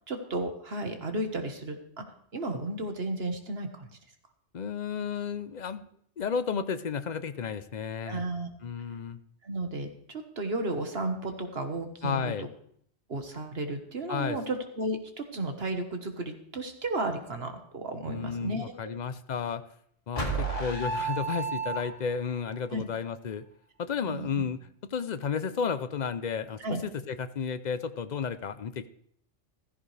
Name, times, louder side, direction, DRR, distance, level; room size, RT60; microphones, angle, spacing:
voice 1, 0.1-2.0 2.3-3.9 8.1-8.5 9.4-12.5 13.1-18.9 22.7-22.8 24.1-24.4 26.6-26.8, right 2 dB, 55° right, 5 dB, 1.6 m, -33 dB
voice 2, 4.5-5.9 6.2-8.2 8.6-9.2 12.0-12.5 14.1-14.4 18.1-19.6 20.1-23.4 23.8-24.6 24.9-28.9, left 6 dB, 45° left, 12 dB, 0.6 m, -32 dB
sound 1, 20.2-22.3, right 4 dB, 30° left, 2.2 m, -31 dB
15.5 x 13.5 x 3.3 m, 0.66 s
omnidirectional pair, 1.3 m